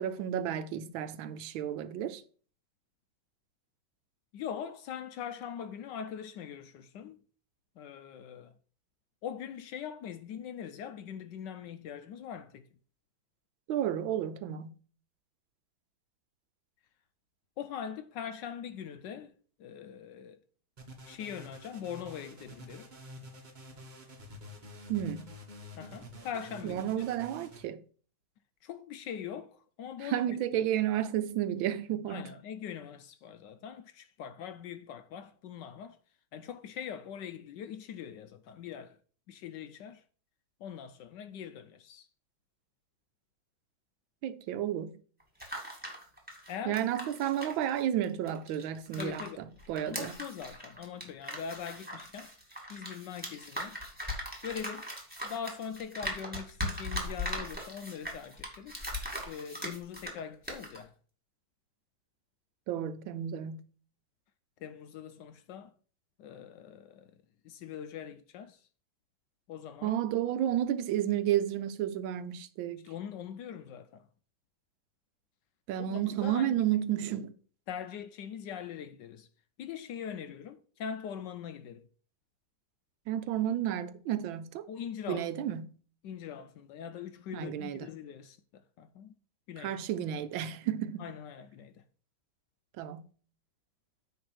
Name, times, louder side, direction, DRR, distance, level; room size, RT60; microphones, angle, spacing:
voice 1, 0.0-2.2 13.7-14.7 24.9-25.3 26.6-27.8 30.0-32.3 44.2-45.0 46.6-50.1 62.7-63.6 69.8-72.9 75.7-77.3 83.1-84.7 85.1-85.7 87.3-87.9 89.6-91.1 92.8-93.0, right 11 dB, 80° right, 1.4 m, -32 dB
voice 2, 4.3-7.2 7.8-8.5 9.2-12.7 17.6-19.3 19.6-20.4 21.1-22.9 25.8-27.0 28.6-30.6 32.1-36.0 36.3-39.0 39.3-40.0 40.6-42.1 46.5-46.8 49.0-49.5 49.9-52.4 52.7-53.8 54.4-54.9 55.2-58.8 59.2-60.9 64.6-65.7 66.2-67.1 67.4-68.7 69.5-70.0 72.8-74.1 75.8-76.6 77.7-79.3 79.6-81.8 84.7-85.2 86.0-89.1 89.5-89.8 91.0-91.8, left 8 dB, 75° left, 1.1 m, -42 dB
sound 1, 20.8-27.6, equal, 30° right, 1.0 m, -49 dB
sound 2, 45.2-49.3 49.6-60.2 60.4-60.8, left 1 dB, 5° right, 2.1 m, -39 dB
9.4 x 3.4 x 6.2 m
omnidirectional pair, 2.2 m